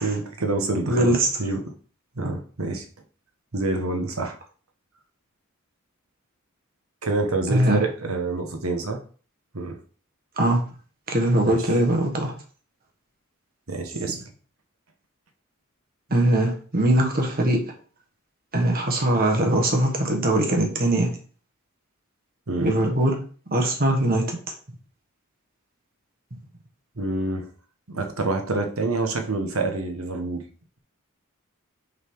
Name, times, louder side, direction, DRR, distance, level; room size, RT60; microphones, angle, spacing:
voice 1, 0.0-1.7 2.2-2.9 3.5-4.4 7.0-9.0 9.5-9.8 11.4-11.6 13.7-14.2 22.5-22.7 27.0-27.5 27.9-30.4, right 2 dB, 80° right, 5 dB, 1.2 m, -27 dB
voice 2, 0.9-1.3 7.5-7.8 10.4-10.6 11.1-12.3 16.1-17.6 18.5-21.1 22.6-23.2 23.5-24.4, right 1 dB, 45° right, 2 dB, 1.4 m, -21 dB
6.3 x 4.1 x 4.7 m, 0.41 s
head